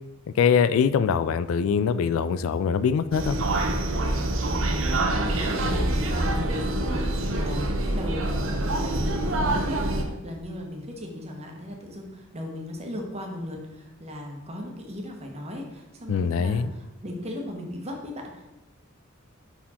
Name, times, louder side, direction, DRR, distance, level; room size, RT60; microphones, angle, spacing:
voice 1, 0.4-3.4 16.1-16.7, left 6 dB, 75° left, 14 dB, 0.3 m, -23 dB
sound 1, 3.1-10.0, right 1 dB, 70° right, 0.8 m, -25 dB
voice 2, 4.5-18.4, left 1 dB, 30° right, 1 dB, 1.1 m, -37 dB
5.6 x 4.5 x 4.2 m, 0.98 s
head